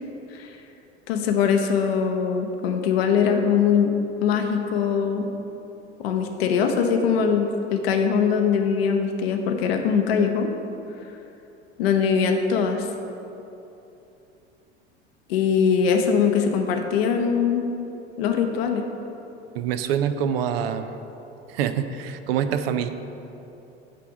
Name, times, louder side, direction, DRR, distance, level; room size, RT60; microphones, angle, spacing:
voice 1, 1.1-3.9 4.2-5.3 6.0-10.5 11.8-12.9 15.3-17.6 18.2-18.9, left 6 dB, 65° left, 4 dB, 0.8 m, -22 dB
voice 2, 19.5-20.9 21.5-22.9, right 8 dB, 60° right, 10 dB, 0.5 m, -25 dB
9.0 x 3.5 x 6.0 m, 2.9 s
figure-of-eight pair, 75°, 33 cm